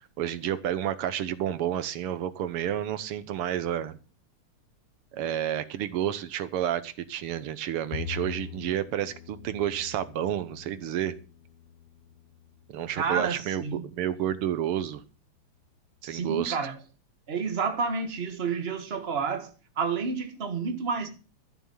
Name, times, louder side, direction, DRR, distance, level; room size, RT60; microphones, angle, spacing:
voice 1, 0.2-4.0 5.1-11.2 12.7-15.0 16.0-16.7, right 11 dB, 85° right, 1.9 m, -30 dB
Bowed string instrument, 7.9-14.2, left 9 dB, 75° left, 0.7 m, -44 dB
voice 2, 12.9-13.9 16.0-16.8 17.3-21.1, right 5 dB, 30° right, 1.7 m, -30 dB
13.5 x 7.2 x 7.2 m
omnidirectional pair, 2.4 m